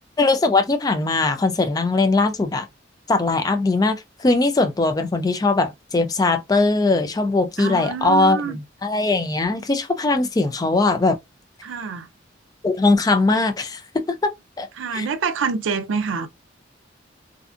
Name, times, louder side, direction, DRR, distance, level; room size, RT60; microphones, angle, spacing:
voice 1, 0.2-2.7 3.1-11.2 12.6-14.3 14.6-14.7 14.9-15.1, left 3 dB, 20° left, 0.3 m, -20 dB
voice 2, 7.6-8.6 11.6-12.1 14.8-16.3, right 5 dB, 85° right, 0.4 m, -26 dB
2.5 x 2.3 x 2.4 m
head